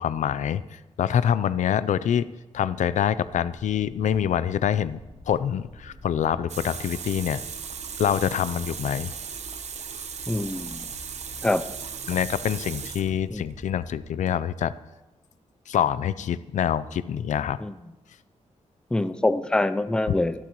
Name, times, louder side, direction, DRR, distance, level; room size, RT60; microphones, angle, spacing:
voice 1, 0.0-2.3 2.5-5.0 5.3-7.4 8.0-9.1 12.1-14.7 15.7-17.6 20.1-20.2, left 9 dB, 90° left, 15 dB, 0.5 m, -25 dB
sound 1, 2.6-14.0, left 1 dB, 20° right, 4.0 m, -48 dB
Water tap faucet, 6.5-13.5, right 7 dB, 65° right, 0.9 m, -37 dB
voice 2, 10.3-10.9 11.4-11.6 13.3-13.4 17.6-17.7 18.9-20.3, left 2 dB, 5° left, 12 dB, 0.5 m, -25 dB
25.5 x 12.0 x 3.1 m, 1.1 s
wide cardioid pair, 170°, 12 cm